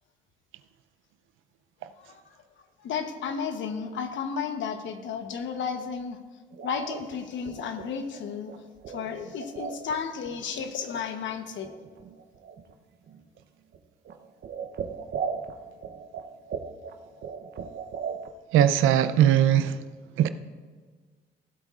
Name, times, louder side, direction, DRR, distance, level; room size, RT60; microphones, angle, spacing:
voice 1, 2.0-2.4 2.8-6.2 6.6-8.5 8.9-11.7, left 6 dB, 70° left, 1.0 m, -33 dB
sound 1, 6.5-10.0 10.2-11.0 11.3-11.4 11.6-12.7 13.1-13.4 13.7-13.8 14.0-18.3, right 6 dB, 60° right, 0.8 m, -38 dB
voice 2, 18.5-19.7 20.2-20.3, right 10 dB, 90° right, 0.5 m, -19 dB
17.0 x 8.1 x 2.4 m
cardioid pair, 90°, 20 cm